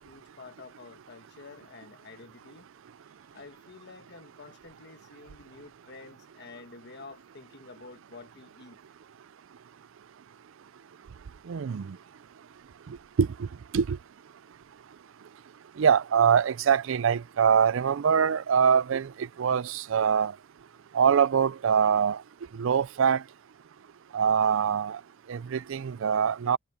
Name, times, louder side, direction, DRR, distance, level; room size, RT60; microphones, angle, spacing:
voice 1, 0.0-2.7 3.3-8.8, left 3 dB, 55° left, 1.3 m, -49 dB
voice 2, 11.5-11.8 13.2-13.3 13.7-14.0 15.8-19.1 19.4-20.3 20.9-22.2 22.6-23.2 24.1-25.0 25.3-26.6, right 7 dB, 70° right, 0.4 m, -23 dB
head